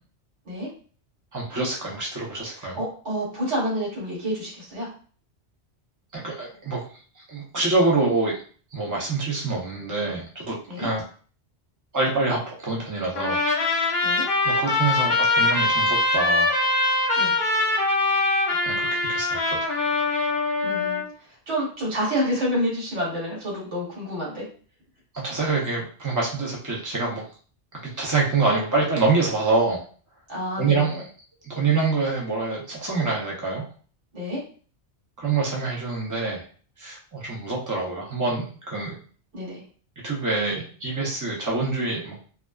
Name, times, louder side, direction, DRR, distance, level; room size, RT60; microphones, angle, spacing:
voice 1, 1.3-2.8 6.1-6.8 7.3-8.4 8.7-11.0 11.9-13.4 14.4-16.6 18.6-19.6 25.2-27.2 27.7-29.8 30.6-31.1 31.4-33.6 35.2-36.4 36.8-38.9 40.0-42.2, right 3 dB, 20° right, -3 dB, 0.5 m, -26 dB
voice 2, 2.6-4.9 10.7-10.9 14.0-14.2 17.2-17.3 20.6-21.0 21.5-24.4 30.3-31.0 34.1-34.4 39.3-39.6, equal, 80° right, -5 dB, 1.5 m, -28 dB
Trumpet, 13.2-21.1, left 2 dB, 55° left, 0.8 m, -23 dB
2.5 x 2.2 x 2.2 m, 0.42 s
omnidirectional pair, 1.2 m